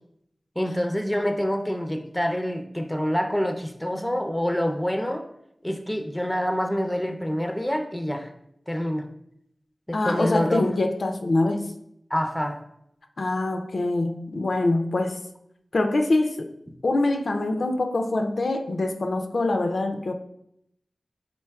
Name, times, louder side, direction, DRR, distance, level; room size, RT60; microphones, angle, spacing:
voice 1, 0.6-5.3 5.6-8.3 8.7-9.1 9.9-10.7 12.1-12.6, equal, 5° left, 5 dB, 0.4 m, -26 dB
voice 2, 9.9-11.7 13.2-15.2 15.7-16.5 16.8-20.1, left 2 dB, 70° left, 5 dB, 0.3 m, -24 dB
4.4 x 4.0 x 2.2 m, 0.76 s
wide cardioid pair, 55°, 0 cm